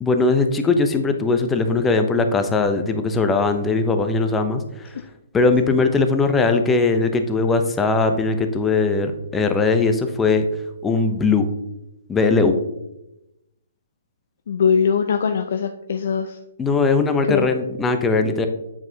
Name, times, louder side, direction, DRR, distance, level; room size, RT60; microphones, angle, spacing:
voice 1, 0.0-4.6 5.3-10.5 10.8-11.5 12.1-12.6 16.6-18.5, left 3 dB, 10° left, 7 dB, 0.5 m, -19 dB
voice 2, 14.5-16.3 17.3-17.5, left 6 dB, 60° left, 7 dB, 0.4 m, -21 dB
7.5 x 4.8 x 2.7 m, 0.90 s
hypercardioid pair, 135°, 0 cm